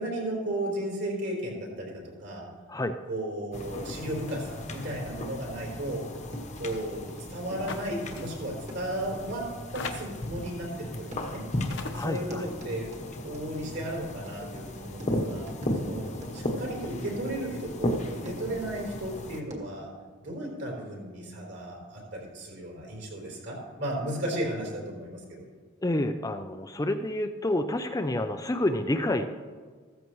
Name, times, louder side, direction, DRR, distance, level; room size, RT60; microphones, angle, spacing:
voice 1, 0.0-2.5 3.1-6.1 6.6-9.5 9.7-11.4 11.9-12.9 13.2-15.5 15.8-16.0 16.3-19.9 20.2-25.4, right 1 dB, 60° right, -2 dB, 3.9 m, -34 dB
sound 1, 3.5-19.4, left 1 dB, 35° left, 1.1 m, -36 dB
sound 2, 5.7-17.9 18.2-19.9, right 1 dB, 35° right, 1.8 m, -47 dB
sound 3, 7.7-7.9 8.2-8.3 9.2-9.3 9.7-10.3 11.3-11.4 11.7-12.1, left 4 dB, 60° left, 1.0 m, -37 dB
voice 2, 11.9-12.4 25.8-29.3, left 1 dB, 15° left, 7 dB, 0.5 m, -28 dB
15.5 x 14.0 x 3.1 m, 1.5 s
head